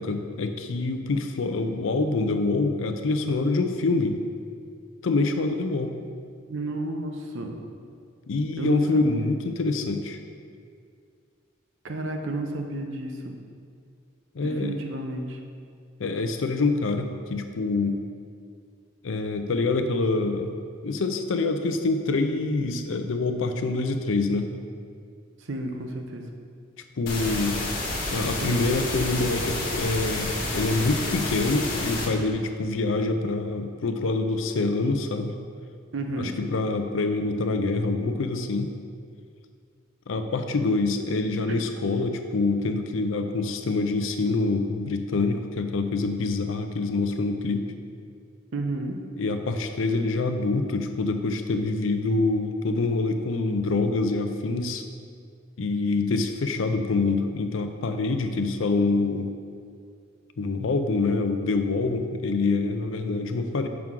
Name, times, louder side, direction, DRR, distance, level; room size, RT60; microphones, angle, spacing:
voice 1, 0.0-4.2 5.0-6.0 8.3-10.2 14.3-14.7 16.0-18.0 19.0-20.6 20.8-24.5 27.0-27.6 28.1-35.4 36.2-38.7 40.1-47.7 49.2-54.8 55.6-59.3 60.4-63.7, left 3 dB, 75° left, 7 dB, 0.5 m, -26 dB
voice 2, 6.5-7.6 8.6-9.0 11.8-13.3 14.4-15.4 25.4-26.3 28.4-28.7 35.9-36.3 41.5-41.6 48.5-49.0, right 2 dB, 70° right, 4 dB, 0.7 m, -31 dB
sound 1, 27.1-32.1, left 2 dB, 50° left, 1.5 m, -29 dB
5.9 x 3.7 x 5.9 m, 2.2 s
head